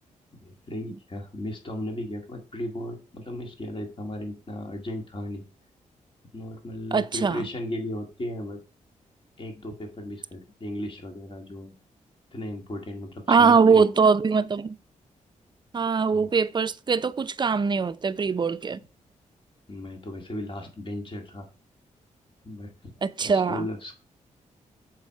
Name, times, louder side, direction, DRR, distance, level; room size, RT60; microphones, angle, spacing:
voice 1, 0.4-5.4 6.3-8.6 9.4-11.7 12.3-13.8 16.1-16.3 19.7-21.5 22.4-23.9, left 1 dB, 40° left, 1.9 m, -36 dB
voice 2, 6.9-7.4 13.3-14.8 15.7-18.8 23.0-23.7, right 5 dB, 35° right, 0.5 m, -22 dB
7.2 x 4.5 x 4.6 m
cardioid pair, 80°, 13 cm